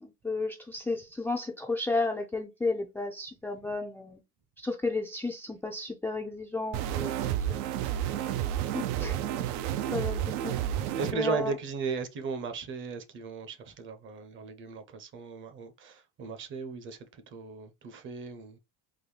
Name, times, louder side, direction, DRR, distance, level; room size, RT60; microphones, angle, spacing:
voice 1, 0.0-4.2 4.6-7.6 8.7-9.2 9.9-10.6 11.1-11.5, left 3 dB, 5° left, 0.4 m, -33 dB
sound 1, 6.7-11.1, right 11 dB, 65° right, 0.5 m, -31 dB
voice 2, 11.0-18.6, right 4 dB, 40° right, 0.8 m, -36 dB
3.8 x 2.2 x 3.2 m
supercardioid pair, 120°, 30 cm